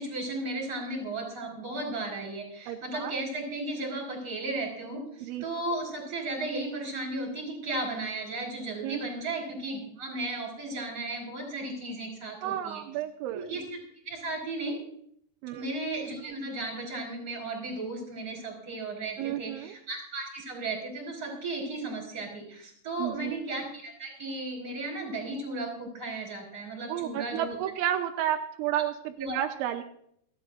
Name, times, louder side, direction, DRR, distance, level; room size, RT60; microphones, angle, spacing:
voice 1, 0.0-12.8 13.3-13.8 14.0-14.8 15.5-27.5 28.7-28.8 29.2-29.4, right 2 dB, 20° right, 1 dB, 4.9 m, -35 dB
voice 2, 2.7-3.1 5.2-5.5 8.8-9.0 12.4-13.4 15.4-15.7 19.2-19.8 23.0-23.4 26.9-29.8, right 11 dB, 85° right, 5 dB, 3.1 m, -31 dB
28.5 x 10.0 x 2.6 m, 0.69 s
omnidirectional pair, 5.4 m